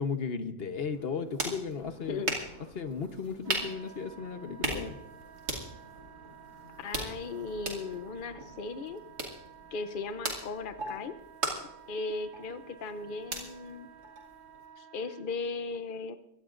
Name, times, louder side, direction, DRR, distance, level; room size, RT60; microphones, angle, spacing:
voice 1, 0.0-2.2 2.7-5.0, left 5 dB, 40° left, 8 dB, 1.0 m, -35 dB
sound 1, 0.9-14.7, right 2 dB, 65° right, 3.1 m, -39 dB
Wind instrument woodwind instrument, 3.4-15.2, right 7 dB, 30° right, 1.3 m, -53 dB
voice 2, 6.8-9.0 9.7-11.2 11.9-13.9 14.8-16.2, left 4 dB, 70° left, 10 dB, 0.4 m, -37 dB
23.5 x 17.5 x 2.5 m, 0.88 s
omnidirectional pair, 1.8 m